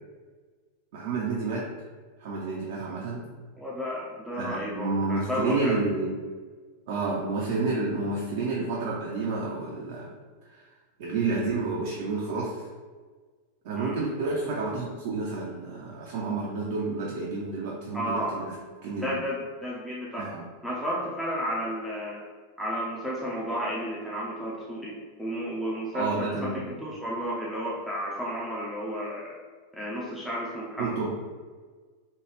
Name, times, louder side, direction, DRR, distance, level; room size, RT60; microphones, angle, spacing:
voice 1, 0.9-1.6 2.2-3.2 4.4-6.1 6.9-10.1 10.5-10.6 11.0-12.5 13.6-18.5 18.8-19.2 20.2-20.4 25.9-26.8 30.8-31.1, right 3 dB, 50° right, -3 dB, 0.5 m, -30 dB
voice 2, 3.6-5.8 13.8-14.1 17.9-18.3 19.0-20.3 20.6-22.2 22.6-24.9 25.2-29.4 29.7-31.0, equal, 5° left, -6 dB, 0.5 m, -32 dB
3.2 x 2.2 x 3.1 m, 1.5 s
figure-of-eight pair, 90°, 0 cm